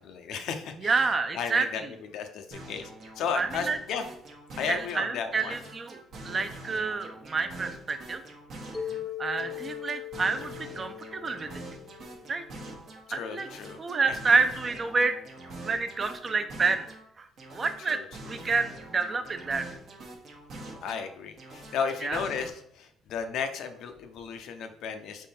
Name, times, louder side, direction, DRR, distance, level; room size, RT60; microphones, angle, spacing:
voice 1, 0.0-1.8 2.1-2.9 3.2-4.1 4.6-5.6 8.9-9.0 13.1-13.8 17.8-18.0 20.8-25.3, left 6 dB, 75° left, 7 dB, 0.5 m, -34 dB
voice 2, 0.8-1.9 3.4-3.8 4.7-8.2 9.2-11.6 12.3-12.4 13.1-13.5 13.8-15.2 15.6-16.9 17.2-18.0 18.3-19.7 22.0-22.2, right 4 dB, 35° right, 8 dB, 0.5 m, -28 dB
sound 1, 2.5-5.1 5.4-9.1 9.4-13.0 13.4-17.0 17.4-21.1 21.4-22.5, right 2 dB, 55° right, 0.9 m, -45 dB
Mallet percussion, 8.7-12.9, left 10 dB, ahead, 0.7 m, -40 dB
3.7 x 3.2 x 4.2 m, 0.72 s
cardioid pair, 100°, 0 cm